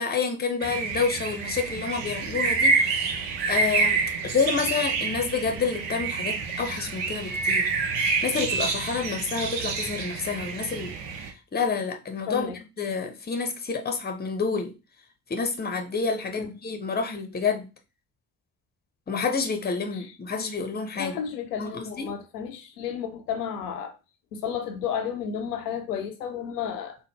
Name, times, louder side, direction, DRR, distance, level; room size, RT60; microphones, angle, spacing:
voice 1, 0.0-3.1 3.5-7.7 8.2-10.9 11.5-12.5 12.8-14.7 15.3-17.7 19.1-21.2 21.6-22.1, left 5 dB, 20° left, 0.8 m, -28 dB
sound 1, 0.6-11.3, right 4 dB, 65° right, 0.8 m, -27 dB
voice 2, 12.3-12.6 16.3-16.5 19.9-20.1 21.0-23.9 24.3-27.0, left 8 dB, 85° left, 0.6 m, -32 dB
3.9 x 2.2 x 3.4 m
figure-of-eight pair, 45°, 46 cm